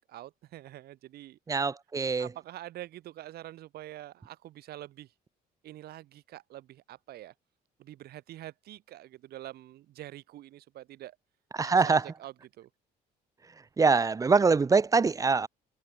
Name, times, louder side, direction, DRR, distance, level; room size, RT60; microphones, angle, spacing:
voice 1, 0.0-1.7 2.2-5.1 5.6-7.3 7.8-11.2 11.6-12.7, right 14 dB, 70° right, 2.1 m, -46 dB
voice 2, 1.5-2.3 11.5-12.0 13.8-15.5, right 4 dB, 20° right, 0.6 m, -24 dB
cardioid pair, 110°, 17 cm